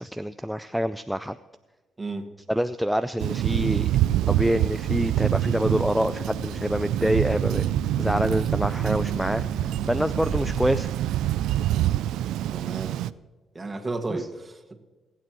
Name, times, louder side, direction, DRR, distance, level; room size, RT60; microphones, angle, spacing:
voice 1, 0.0-1.4 2.5-3.9 4.3-7.6 8.0-10.9 14.1-14.3, equal, ahead, 10 dB, 0.4 m, -26 dB
Thunder, 3.2-13.1, right 13 dB, 85° right, 0.3 m, -26 dB
sound 1, 5.4-10.8, right 3 dB, 65° right, 1.5 m, -37 dB
voice 2, 12.5-13.0 13.6-14.8, right 3 dB, 25° right, 3 dB, 1.9 m, -33 dB
25.5 x 9.0 x 3.1 m, 1.2 s
cardioid pair, 90°, 0 cm